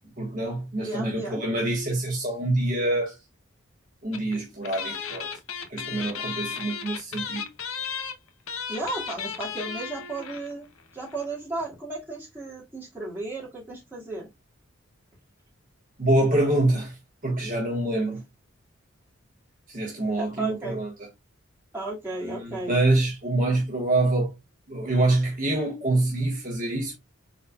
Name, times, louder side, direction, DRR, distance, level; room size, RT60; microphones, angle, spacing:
voice 1, 0.2-3.1 4.0-5.3 5.7-7.5 16.0-17.0 17.2-18.2 19.7-20.9 22.2-24.4 24.7-26.9, right 2 dB, 40° right, 1.3 m, -25 dB
voice 2, 0.8-1.4 8.7-14.3 20.2-20.8 21.7-22.8, right 2 dB, 10° right, 1.9 m, -34 dB
sound 1, 4.1-4.4 4.6-10.5 10.8-10.9 11.1-11.2, left 6 dB, 80° left, 0.8 m, -34 dB
4.2 x 4.0 x 2.3 m
head